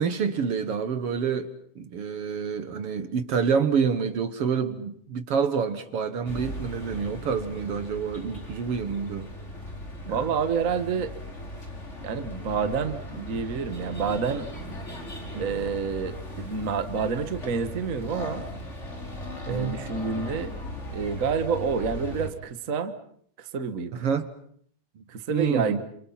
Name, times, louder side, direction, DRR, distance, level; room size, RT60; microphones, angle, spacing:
voice 1, 0.0-9.3 10.1-10.3 15.3-15.5 19.5-19.8 23.9-24.3 25.0-25.8, right 6 dB, 55° right, 1.9 m, -28 dB
sound 1, 6.2-22.3, left 1 dB, 20° left, 4.5 m, -38 dB
voice 2, 10.0-11.1 12.0-14.5 15.4-18.4 19.5-20.5 20.9-22.9 23.4-24.1 25.1-25.8, right 5 dB, 40° right, 1.2 m, -28 dB
28.5 x 28.5 x 5.8 m
omnidirectional pair, 3.6 m